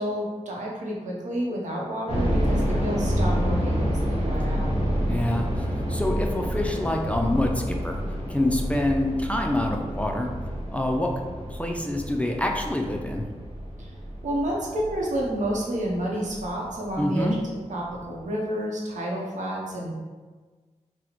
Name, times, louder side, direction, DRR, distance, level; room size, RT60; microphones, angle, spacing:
voice 1, 0.0-4.7 13.8-13.9 14.2-17.4 17.7-19.9, right 1 dB, 85° right, -3 dB, 0.7 m, -30 dB
sound 1, 2.1-16.9 17.2-17.3 17.9-18.2, equal, 55° right, 0.8 m, -28 dB
voice 2, 5.0-8.0 8.3-10.3 10.7-11.1 11.5-13.2 17.0-17.4, left 1 dB, 10° left, 1 dB, 0.3 m, -26 dB
4.0 x 2.0 x 2.9 m, 1.4 s
wide cardioid pair, 105°, 12 cm